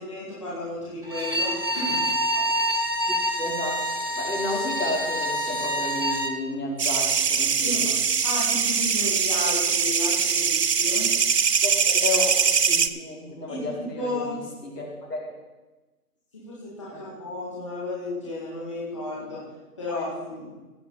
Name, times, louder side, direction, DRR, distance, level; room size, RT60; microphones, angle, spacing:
voice 1, 0.0-2.1 7.6-7.8 8.2-11.1 13.5-14.4 16.3-19.4 19.8-20.5, left 2 dB, 20° left, -7 dB, 2.1 m, -33 dB
Bowed string instrument, 1.0-6.4, equal, 35° left, 0.6 m, -27 dB
voice 2, 3.4-3.8 4.2-8.0 11.6-15.3 16.9-17.1 19.9-20.0, left 2 dB, 75° left, -2 dB, 4.3 m, -32 dB
sound 1, 6.8-12.9, right 6 dB, 80° right, 0.8 m, -22 dB
16.0 x 6.6 x 5.6 m, 1.1 s
figure-of-eight pair, 170°, 47 cm